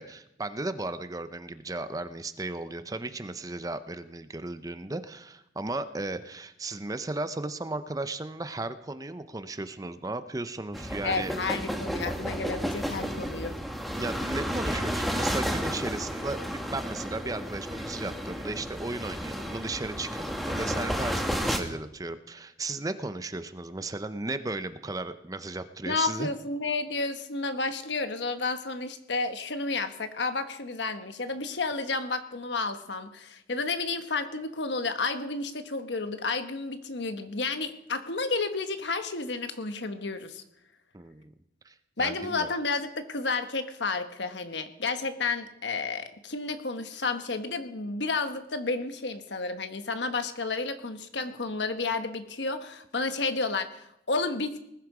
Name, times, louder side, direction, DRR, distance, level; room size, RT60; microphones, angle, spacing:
voice 1, 0.0-11.4 14.0-26.3 40.9-41.3 41.6-42.5, right 2 dB, 20° right, 11 dB, 0.6 m, -35 dB
sound 1, 10.7-21.6, equal, ahead, 1.2 m, -32 dB
voice 2, 11.0-13.6 25.9-40.4 42.0-54.6, left 3 dB, 80° left, 9 dB, 1.2 m, -31 dB
20.0 x 12.0 x 4.9 m, 0.81 s
head